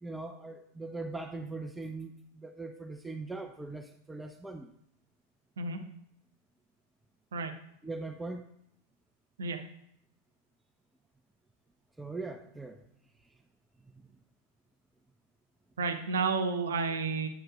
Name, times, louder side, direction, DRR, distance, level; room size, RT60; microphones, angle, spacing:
voice 1, 0.0-4.7 7.8-8.5 12.0-12.8, right 3 dB, 5° right, 7 dB, 0.4 m, -40 dB
voice 2, 15.8-17.3, right 4 dB, 65° right, 7 dB, 0.8 m, -31 dB
8.8 x 8.7 x 2.4 m, 0.73 s
figure-of-eight pair, 90°, 0 cm